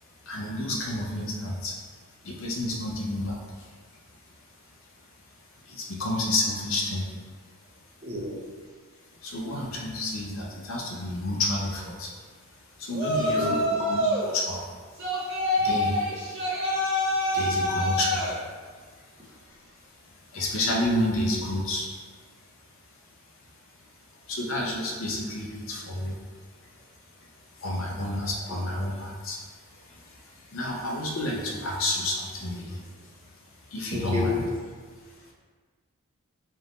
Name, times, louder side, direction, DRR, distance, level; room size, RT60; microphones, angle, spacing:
voice 1, 0.2-1.8 2.2-3.7 5.6-7.1 9.2-12.1 12.8-14.7 15.6-16.0 17.0-19.7 20.0-21.9 24.3-26.2 27.6-29.4 29.7-33.1 33.7-34.5, left 1 dB, 60° left, -2 dB, 0.6 m, -30 dB
voice 2, 8.0-8.4 13.1-13.8 28.5-28.6 33.9-34.4, left 2 dB, 25° right, -3 dB, 0.5 m, -31 dB
Yell, 12.9-14.3 15.0-18.4, left 1 dB, 50° right, 1.2 m, -26 dB
3.5 x 2.6 x 3.9 m, 1.5 s
head